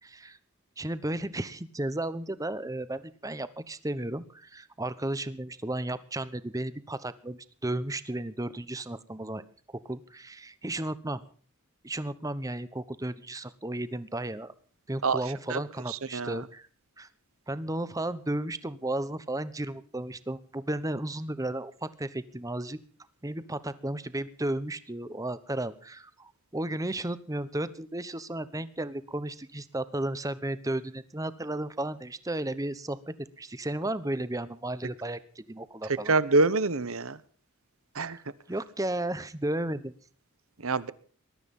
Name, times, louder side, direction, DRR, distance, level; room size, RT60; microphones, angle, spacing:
voice 1, 0.0-0.4 0.8-9.4 9.7-11.2 11.8-14.5 14.9-16.7 17.0-17.1 17.5-22.8 23.2-36.1 38.5-39.9, right 1 dB, 15° right, 14 dB, 1.0 m, -34 dB
voice 2, 36.1-37.2 37.9-38.2 40.6-40.9, right 3 dB, 65° right, 16 dB, 1.1 m, -25 dB
20.5 x 12.5 x 5.5 m, 0.44 s
head